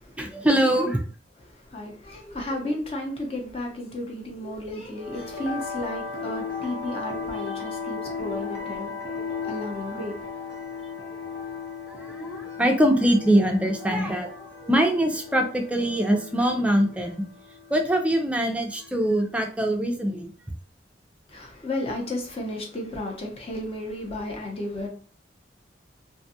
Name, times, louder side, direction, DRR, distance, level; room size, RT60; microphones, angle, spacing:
voice 1, 0.2-1.0 11.9-17.1 17.7-20.3, right 1 dB, 5° right, 0.4 m, -23 dB
voice 2, 1.7-9.2 9.5-10.1 21.3-24.9, left 1 dB, 35° left, 0.7 m, -33 dB
sound 1, 5.0-19.1, left 5 dB, 75° left, 0.9 m, -36 dB
2.6 x 2.3 x 2.7 m
head